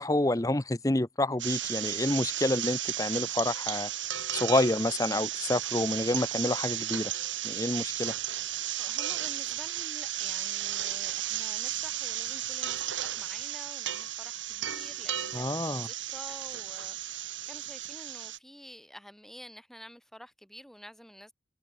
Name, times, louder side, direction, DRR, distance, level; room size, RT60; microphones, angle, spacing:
voice 1, 0.0-3.9 4.3-7.1 7.4-8.2 15.3-15.9, left 1 dB, 20° left, 0.8 m, -28 dB
sound 1, 1.4-18.4, right 12 dB, 90° right, 3.6 m, -34 dB
voice 2, 8.8-21.3, equal, ahead, 5.5 m, -50 dB
head